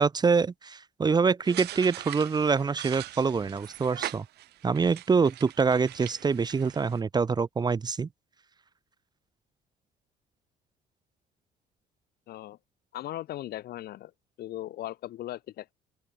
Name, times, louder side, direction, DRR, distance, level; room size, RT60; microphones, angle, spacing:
voice 1, 0.0-4.2 4.6-8.1, right 5 dB, 25° right, 0.8 m, -25 dB
sound 1, 1.4-7.0, right 16 dB, 75° right, 4.8 m, -41 dB
voice 2, 12.3-12.6 12.9-14.1 14.4-15.7, left 14 dB, 70° left, 1.8 m, -38 dB
open air
cardioid pair, 110°, 17 cm